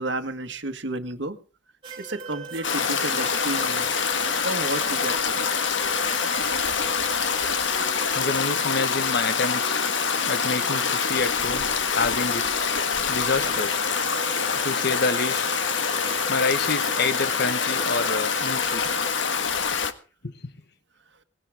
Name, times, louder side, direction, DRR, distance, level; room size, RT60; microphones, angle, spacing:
voice 1, 0.0-1.4 2.0-4.0 4.4-5.4, right 2 dB, 70° right, 1.7 m, -31 dB
sound 1, 1.8-19.1, right 5 dB, 25° right, 3.3 m, -39 dB
Stream, 2.6-19.9, left 6 dB, 85° left, 1.6 m, -25 dB
voice 2, 8.1-9.8 10.3-12.5 13.1-13.9 14.6-15.6 16.3-18.8 20.2-20.5, left 3 dB, 60° left, 1.3 m, -28 dB
19.0 x 17.0 x 3.6 m
head